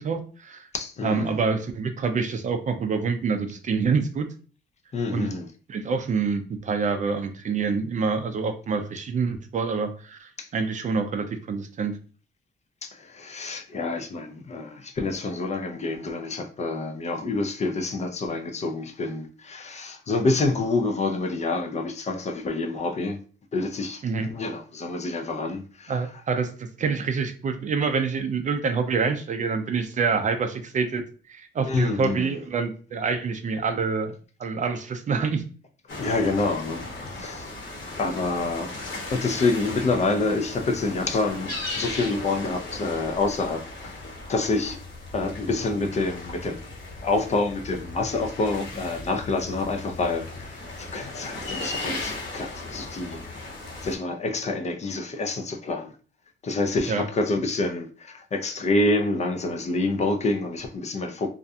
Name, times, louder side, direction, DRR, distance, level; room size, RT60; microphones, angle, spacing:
voice 1, 0.0-0.7 1.0-4.3 5.1-5.3 5.7-11.9 24.0-24.3 25.9-31.0 31.3-34.1 34.4-35.4 56.9-57.0, right 5 dB, 40° right, 0.4 m, -26 dB
voice 2, 0.7-1.4 4.9-5.5 10.4-10.5 12.8-23.2 23.5-25.9 31.7-32.4 36.0-36.8 37.1-37.6 38.0-38.7 39.1-44.0 44.3-44.8 45.1-46.6 47.0-53.6 53.8-55.9 56.4-61.3, left 3 dB, 35° left, 0.4 m, -27 dB
sound 1, 35.9-54.0, left 2 dB, 60° left, 1.1 m, -37 dB
2.4 x 2.2 x 2.6 m
cardioid pair, 90°, 20 cm